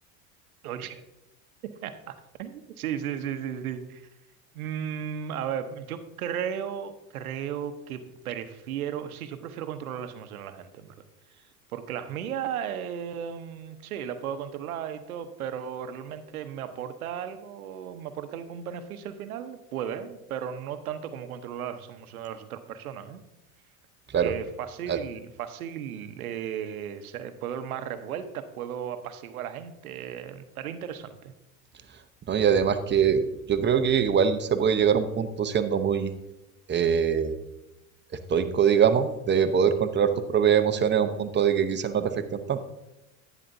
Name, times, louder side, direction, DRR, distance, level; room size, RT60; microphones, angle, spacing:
voice 1, 0.6-1.0 1.6-4.1 4.5-10.9 11.7-23.2 24.2-31.3, right 9 dB, 85° right, 9 dB, 0.9 m, -35 dB
voice 2, 32.3-36.1 36.7-37.3 38.1-42.6, right 7 dB, 25° right, 9 dB, 0.8 m, -23 dB
11.0 x 9.3 x 2.7 m, 0.95 s
hypercardioid pair, 90°, 42 cm